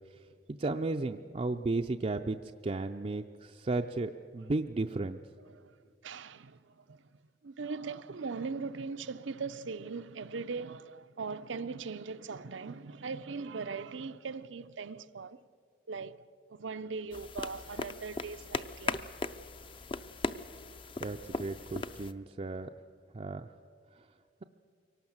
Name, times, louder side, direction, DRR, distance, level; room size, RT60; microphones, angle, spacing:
voice 1, 0.6-2.4 2.6-5.2 21.0-22.7 23.1-23.5 24.0-24.1, right 2 dB, 35° right, 0.4 m, -34 dB
voice 2, 6.0-15.4 15.9-16.2 16.5-19.1, right 4 dB, 80° right, 0.6 m, -40 dB
sound 1, 17.1-22.1, left 3 dB, 25° left, 0.5 m, -38 dB
23.5 x 18.0 x 7.3 m
head